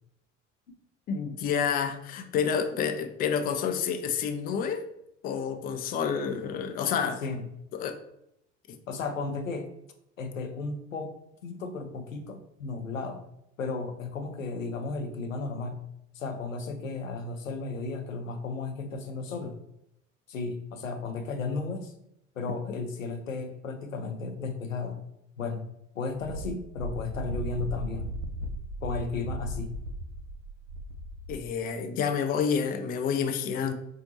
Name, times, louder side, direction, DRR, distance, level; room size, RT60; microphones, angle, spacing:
voice 1, 1.1-4.8 5.2-7.2 7.7-8.0 8.7-8.8 31.3-33.7, left 7 dB, 25° left, 8 dB, 0.4 m, -29 dB
voice 2, 8.9-9.7 10.2-11.1 11.4-13.2 13.6-15.8 16.1-19.6 20.3-21.9 22.4-25.0 25.4-25.6 25.9-28.1 28.8-29.8, left 4 dB, 85° left, 6 dB, 0.5 m, -34 dB
Wind, 26.2-31.5, equal, 80° right, 0.5 m, -36 dB
4.1 x 2.7 x 2.8 m, 0.80 s
figure-of-eight pair, 60°, 38 cm